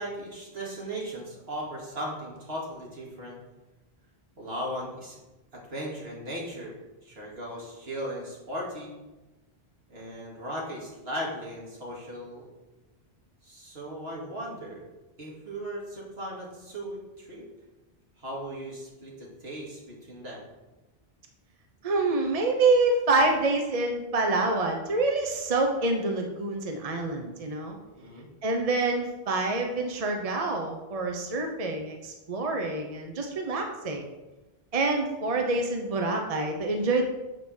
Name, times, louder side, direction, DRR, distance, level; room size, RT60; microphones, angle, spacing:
voice 1, 0.0-3.4 4.4-5.2 5.5-8.9 9.9-12.5 13.4-14.8 15.2-17.5 18.2-20.5 28.0-28.3, equal, 80° right, -3 dB, 2.5 m, -37 dB
voice 2, 21.8-27.8 28.4-34.0 34.7-37.0, right 3 dB, 40° right, 3 dB, 0.9 m, -26 dB
7.5 x 5.0 x 6.2 m, 1.1 s
omnidirectional pair, 1.0 m